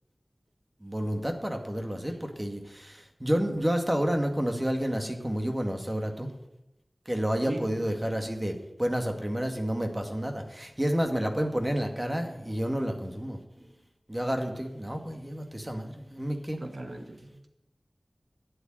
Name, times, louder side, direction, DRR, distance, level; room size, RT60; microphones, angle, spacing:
voice 1, 0.8-6.3 7.1-13.4 14.1-16.6, equal, 20° right, 4 dB, 2.1 m, -30 dB
voice 2, 7.5-7.8 16.6-17.5, right 1 dB, 65° right, 4 dB, 1.8 m, -38 dB
10.5 x 8.3 x 9.1 m, 0.89 s
wide cardioid pair, 55°, 0 cm